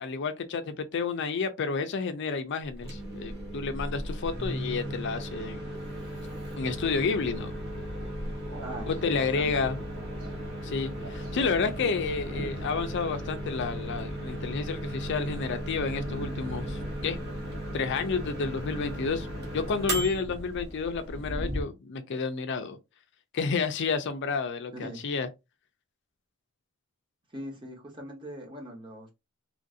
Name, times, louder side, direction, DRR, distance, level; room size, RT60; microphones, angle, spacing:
voice 1, 0.0-5.6 6.6-7.5 8.9-9.8 10.6-17.2 17.7-19.3 19.5-22.8 23.3-25.3, left 4 dB, 55° left, 0.4 m, -30 dB
Microwave oven, 2.7-21.5, right 1 dB, 50° right, 1.0 m, -36 dB
sound 1, 4.3-21.6, equal, 90° right, 1.5 m, -42 dB
voice 2, 8.6-9.7 24.7-25.0 27.3-29.1, right 1 dB, 25° right, 1.0 m, -41 dB
3.0 x 2.5 x 2.6 m
head